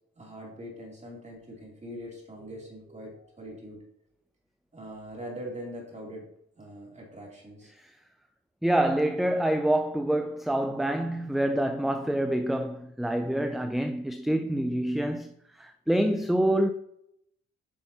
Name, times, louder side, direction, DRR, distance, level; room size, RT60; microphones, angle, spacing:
voice 1, 0.2-3.8 4.7-6.3 6.5-7.7, equal, 25° right, 2.9 m, -42 dB
voice 2, 8.6-15.3 15.6-16.7, right 1 dB, ahead, 0.3 m, -26 dB
8.9 x 5.6 x 2.8 m
cardioid pair, 90°, 30 cm